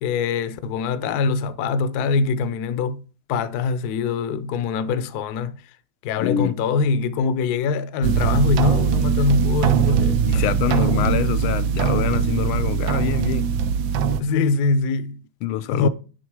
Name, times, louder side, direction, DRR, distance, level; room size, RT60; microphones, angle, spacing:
voice 1, 0.0-3.0 3.3-5.6 6.0-11.1 14.2-15.2 15.7-15.9, left 4 dB, 70° left, 0.9 m, -23 dB
voice 2, 6.2-6.5 10.3-13.5 15.4-15.9, left 12 dB, 85° left, 1.5 m, -25 dB
sound 1, 8.0-14.2, right 7 dB, 75° right, 1.3 m, -21 dB
11.0 x 3.6 x 4.7 m
omnidirectional pair, 2.3 m